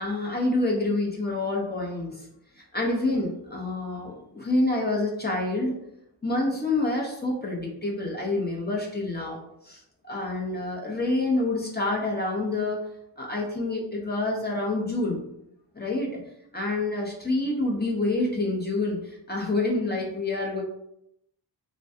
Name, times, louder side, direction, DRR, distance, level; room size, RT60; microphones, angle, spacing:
voice 1, 0.0-2.2 2.6-5.8 6.2-9.4 9.6-12.8 13.2-15.2 15.7-16.2 16.5-20.6, left 2 dB, 25° left, -2 dB, 0.8 m, -27 dB
3.3 x 2.2 x 2.7 m, 0.79 s
cardioid pair, 55°, 43 cm